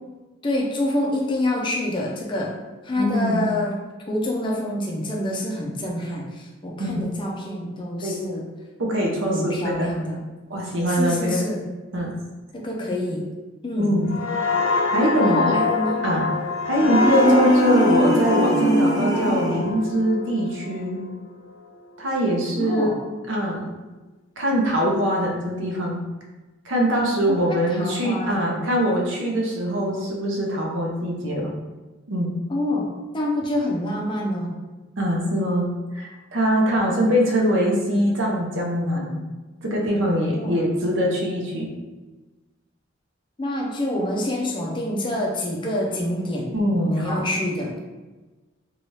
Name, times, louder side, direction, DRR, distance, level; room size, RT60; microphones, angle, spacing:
voice 1, 0.4-2.6 2.8-3.8 4.1-8.5 9.2-10.2 10.9-11.6 12.5-13.3 13.6-14.0 15.1-16.0 22.6-23.0 27.3-28.7 32.5-34.6 36.9-37.1 40.3-40.6 43.4-46.5 46.8-47.8, left 1 dB, 25° left, -1 dB, 0.4 m, -27 dB
voice 2, 3.0-3.4 6.8-7.0 8.0-8.2 8.8-9.9 10.5-11.4 11.9-12.1 13.8-14.1 14.9-15.6 16.0-16.3 16.6-21.0 22.0-23.0 23.3-23.6 24.4-26.0 26.6-31.5 32.1-32.3 35.0-39.2 39.6-41.7 46.5-47.2, equal, 70° right, -1 dB, 0.6 m, -23 dB
sound 1, 14.1-21.6 22.0-22.2, left 3 dB, 85° left, 0.5 m, -25 dB
sound 2, 16.8-19.8, equal, 20° right, 0.7 m, -21 dB
2.7 x 2.3 x 3.1 m, 1.2 s
head